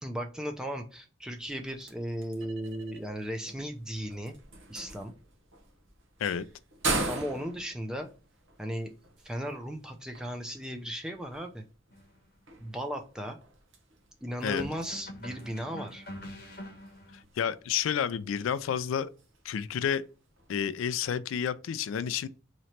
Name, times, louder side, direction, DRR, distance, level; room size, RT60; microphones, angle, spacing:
voice 1, 0.0-4.4 4.7-5.1 7.1-8.1 8.6-8.9 9.2-11.6 12.6-13.4 14.2-16.0, equal, 5° right, 0.5 m, -36 dB
sound 1, 1.4-20.9, right 2 dB, 75° right, 0.9 m, -42 dB
sound 2, 11.9-12.2 14.6-17.2, left 1 dB, 50° left, 0.9 m, -44 dB
voice 2, 17.4-19.1 19.4-20.0 20.5-22.3, left 8 dB, 90° left, 0.3 m, -30 dB
3.1 x 3.0 x 4.1 m
head